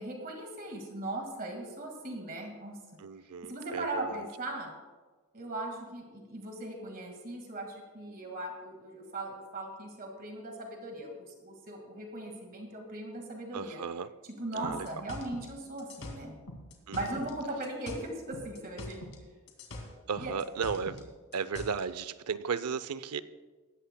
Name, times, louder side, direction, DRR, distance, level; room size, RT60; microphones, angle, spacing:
voice 1, 0.0-2.8 3.4-4.7 5.3-13.8 14.4-16.4 16.9-19.0 20.2-20.3, right 2 dB, 40° right, 2 dB, 1.8 m, -39 dB
voice 2, 3.0-4.2 13.5-14.1 14.5-14.9 16.9-17.0 20.1-21.1 21.3-23.2, right 6 dB, 90° right, 14 dB, 0.5 m, -35 dB
sound 1, 14.6-17.4 17.6-19.2 19.5-21.9, left 1 dB, 65° left, 2.2 m, -43 dB
18.5 x 13.5 x 2.2 m, 1.4 s
head